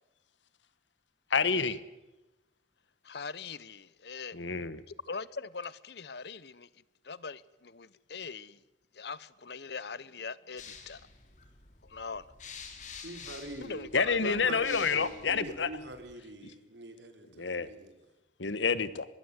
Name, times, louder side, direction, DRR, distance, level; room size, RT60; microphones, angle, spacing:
voice 1, 1.3-1.8 4.3-4.8 13.9-15.7 17.4-17.7 18.4-19.1, left 5 dB, 85° left, 1.3 m, -28 dB
voice 2, 3.0-4.4 4.9-6.7 7.0-8.6 8.9-11.0 11.8-12.3 13.6-14.4, left 5 dB, 65° left, 0.8 m, -41 dB
sound 1, 10.6-16.1, left 5 dB, 40° left, 3.2 m, -49 dB
voice 3, 13.0-13.9 14.2-18.0, right 1 dB, 75° right, 3.3 m, -44 dB
23.5 x 20.5 x 8.1 m
head